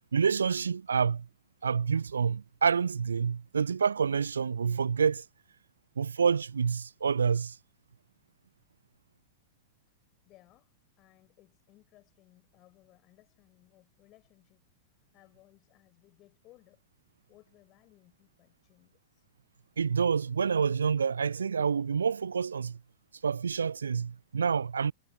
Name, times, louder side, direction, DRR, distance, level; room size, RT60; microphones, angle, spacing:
voice 1, 0.1-1.3 1.6-5.2 6.0-7.6 19.8-22.8 23.2-24.9, right 6 dB, 75° right, 0.3 m, -28 dB
voice 2, 10.2-14.7 15.1-16.8 17.3-19.3, left 17 dB, 35° left, 5.6 m, -62 dB
figure-of-eight pair, 95°, 0 cm